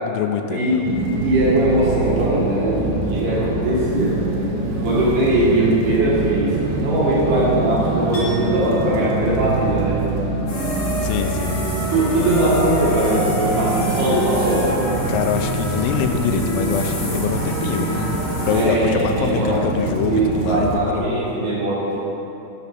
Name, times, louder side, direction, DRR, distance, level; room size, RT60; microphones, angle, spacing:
voice 1, 0.0-0.8 11.0-11.6 15.1-18.2 18.5-21.1, left 8 dB, 85° left, 6 dB, 3.2 m, -24 dB
sound 1, 0.8-20.8, right 2 dB, 85° right, 3.8 m, -24 dB
voice 2, 1.2-4.2 4.8-10.0 11.9-14.7 18.5-19.6 20.1-22.0, right 1 dB, 60° right, -7 dB, 2.4 m, -20 dB
Chink clink, 8.1-14.1 14.4-14.8, left 4 dB, 65° left, 1.5 m, -39 dB
sound 2, 10.5-18.6, equal, 50° left, 2.5 m, -28 dB
9.1 x 6.0 x 5.9 m, 3.0 s
omnidirectional pair, 5.9 m